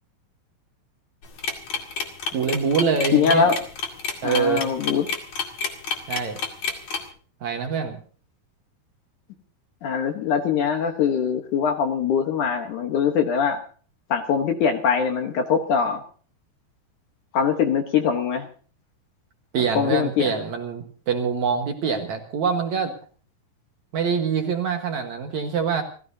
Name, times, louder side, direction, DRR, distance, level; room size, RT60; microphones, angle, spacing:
sound 1, 1.2-7.0, left 5 dB, 50° left, 3.0 m, -28 dB
voice 1, 2.3-3.5 4.2-4.7 6.1-6.4 7.4-8.0 19.5-22.9 23.9-25.8, right 6 dB, 60° right, 3 dB, 2.3 m, -25 dB
voice 2, 3.1-3.6 4.2-5.1 9.8-13.6 14.1-16.0 17.3-18.5 19.7-20.3, left 6 dB, 65° left, 4 dB, 2.2 m, -22 dB
28.5 x 15.5 x 2.8 m, 0.42 s
omnidirectional pair, 4.6 m